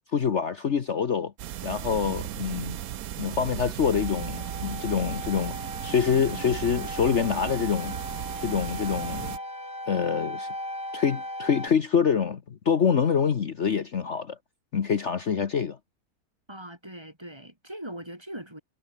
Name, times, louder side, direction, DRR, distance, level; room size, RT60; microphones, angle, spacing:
voice 1, 0.1-1.3 1.6-2.8 3.2-8.0 8.4-9.4 9.9-10.5 10.9-14.4 14.7-15.8, left 7 dB, 50° left, 1.4 m, -26 dB
sound 1, 1.4-9.4, right 12 dB, 70° right, 1.2 m, -36 dB
sound 2, 3.9-11.7, left 1 dB, 10° left, 4.5 m, -38 dB
voice 2, 16.5-18.6, right 1 dB, 15° right, 4.0 m, -40 dB
omnidirectional pair, 1.7 m